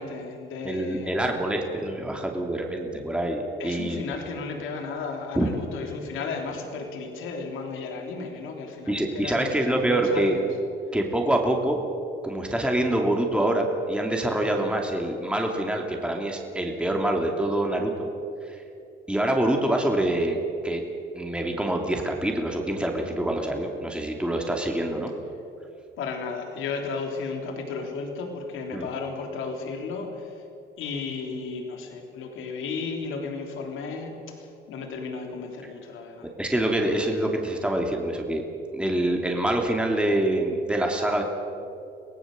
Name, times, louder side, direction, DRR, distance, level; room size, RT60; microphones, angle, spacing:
voice 1, 0.0-1.1 3.6-10.4 26.0-30.4 30.8-34.1 34.4-36.3, left 4 dB, 85° left, 3 dB, 3.4 m, -34 dB
voice 2, 0.6-4.0 5.4-5.6 8.9-10.4 10.9-11.8 12.2-18.1 18.4-18.6 19.1-20.8 21.1-25.1 28.7-28.9 36.4-38.4 38.7-41.2, right 1 dB, 5° right, 1 dB, 2.9 m, -25 dB
24.0 x 17.0 x 7.8 m, 2.7 s
cardioid pair, 90°, 20 cm